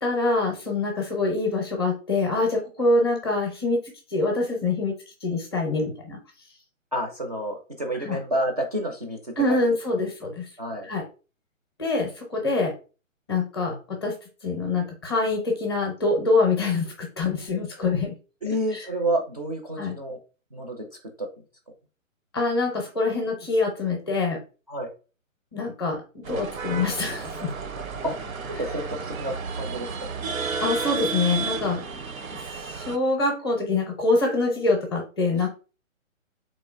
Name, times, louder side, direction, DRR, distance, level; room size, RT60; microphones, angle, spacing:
voice 1, 0.0-3.8 4.1-4.9 5.2-6.2 8.0-8.2 9.4-10.5 10.8-11.0 11.8-12.7 13.3-14.1 14.4-18.1 18.7-18.8 19.8-20.0 22.3-24.4 25.5-27.5 30.6-32.0 32.3-35.5, left 3 dB, 20° left, 1 dB, 0.5 m, -25 dB
voice 2, 6.9-9.6 10.6-10.9 18.4-20.2 20.5-21.3 24.7-24.9 28.0-28.2 28.6-30.0, right 1 dB, 30° right, 2 dB, 0.4 m, -29 dB
sound 1, 26.2-33.0, right 5 dB, 85° right, 0.7 m, -32 dB
3.7 x 3.0 x 2.4 m, 0.35 s
hypercardioid pair, 150°, 40 cm